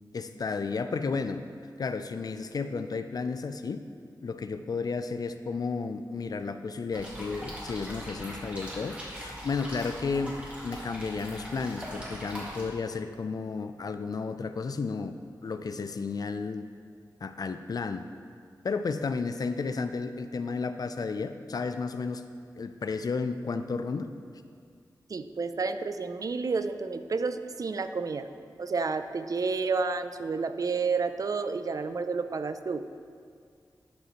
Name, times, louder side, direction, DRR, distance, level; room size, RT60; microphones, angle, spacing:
voice 1, 0.1-1.5 1.8-3.8 4.2-15.2 15.4-16.6 17.2-18.1 18.6-22.3 22.6-24.1, left 4 dB, 55° left, 9 dB, 0.3 m, -32 dB
sound 1, 6.9-12.6, equal, 15° right, 1.8 m, -41 dB
voice 2, 25.1-28.3 28.6-32.8, right 4 dB, 50° right, 10 dB, 0.3 m, -30 dB
12.0 x 5.4 x 2.9 m, 2.2 s
wide cardioid pair, 105°, 8 cm